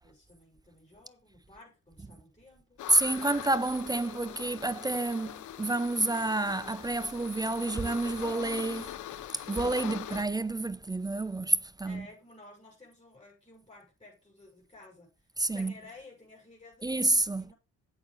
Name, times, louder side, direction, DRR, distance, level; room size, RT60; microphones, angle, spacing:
voice 1, 0.0-2.8 11.8-15.3 15.5-16.9 17.4-17.5, left 2 dB, 15° left, 6.6 m, -54 dB
sound 1, 2.8-10.2, left 12 dB, 75° left, 0.9 m, -42 dB
voice 2, 2.9-8.9 9.5-12.1 15.4-15.7 16.8-17.4, right 2 dB, 15° right, 0.5 m, -29 dB
8.2 x 6.9 x 5.2 m
cardioid pair, 90°, 30 cm